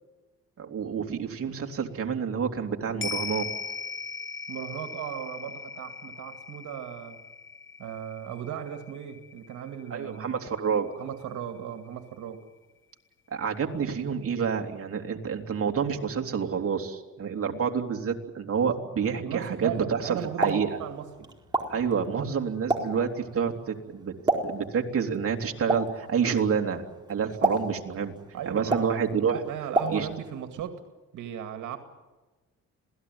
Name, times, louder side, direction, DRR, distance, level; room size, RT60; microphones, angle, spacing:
voice 1, 0.6-3.5 9.9-10.9 13.3-20.7 21.7-24.1 24.4-26.8 27.1-28.1 28.4-29.4 29.9-30.1, right 6 dB, 50° right, 2 dB, 3.1 m, -28 dB
sound 1, 3.0-11.6 11.9-12.0, left 5 dB, 40° left, 1.3 m, -39 dB
voice 2, 4.5-7.2 7.8-10.3 11.0-12.4 19.2-21.3 28.3-29.0 29.5-30.8 31.1-31.8, right 9 dB, 80° right, 6 dB, 2.3 m, -36 dB
Explosion, 20.2-30.4, right 2 dB, 15° right, 4.6 m, -33 dB
27.0 x 18.0 x 9.6 m, 1.2 s
cardioid pair, 90°, 30 cm